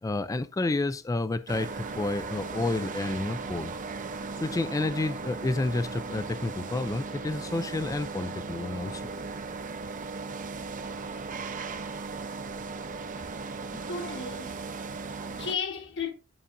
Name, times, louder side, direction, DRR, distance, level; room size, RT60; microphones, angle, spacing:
voice 1, 0.0-3.7 4.4-9.0, left 2 dB, 15° left, 0.3 m, -30 dB
sound 1, 1.5-15.5, right 4 dB, 40° right, 0.6 m, -37 dB
voice 2, 13.9-14.6 14.9-16.1, left 5 dB, 60° left, 1.6 m, -35 dB
11.0 x 5.7 x 2.6 m
head